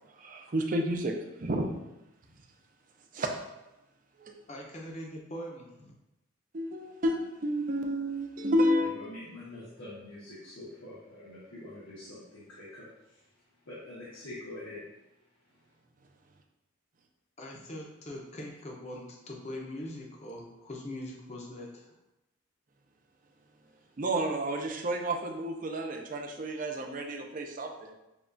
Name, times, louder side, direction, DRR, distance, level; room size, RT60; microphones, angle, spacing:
voice 1, 0.2-1.1 1.4-1.7 3.1-3.3 4.2-4.3 6.5-8.9 24.0-27.9, equal, 40° right, 3 dB, 0.5 m, -30 dB
voice 2, 4.5-5.9 17.4-21.9, left 1 dB, 35° left, -1 dB, 0.6 m, -42 dB
voice 3, 8.8-13.2 13.6-14.8, left 1 dB, 85° left, -9 dB, 1.2 m, -45 dB
6.8 x 2.3 x 2.6 m, 0.93 s
head